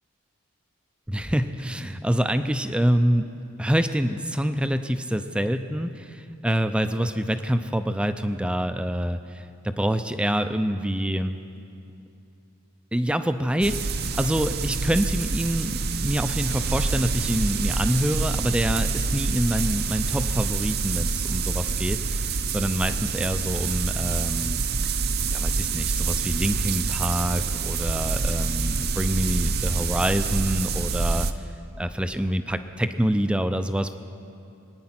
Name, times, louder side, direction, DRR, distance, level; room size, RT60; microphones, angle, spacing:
voice 1, 1.1-3.3 3.6-11.4 12.9-24.6 25.3-31.3 31.8-34.0, equal, 5° right, 9 dB, 0.5 m, -26 dB
sound 1, 13.6-31.3, right 4 dB, 50° right, 0.6 m, -26 dB
24.0 x 9.7 x 5.9 m, 2.7 s
head